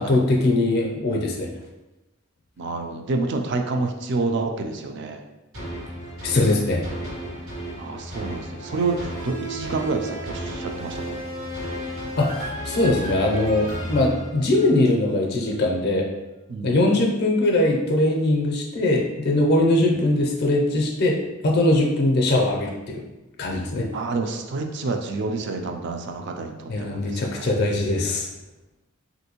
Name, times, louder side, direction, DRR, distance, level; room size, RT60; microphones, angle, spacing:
voice 1, 0.0-1.5 6.2-6.8 12.2-16.1 16.6-23.0 23.4-23.9 26.7-28.3, left 2 dB, 50° left, 0 dB, 0.5 m, -21 dB
voice 2, 2.6-5.2 7.8-11.2 16.5-16.9 19.8-20.0 23.9-27.5, right 3 dB, 55° right, 4 dB, 0.4 m, -28 dB
sound 1, 5.5-14.9 15.4-15.5, equal, 85° right, 1.3 m, -33 dB
3.3 x 2.6 x 2.8 m, 1.0 s
head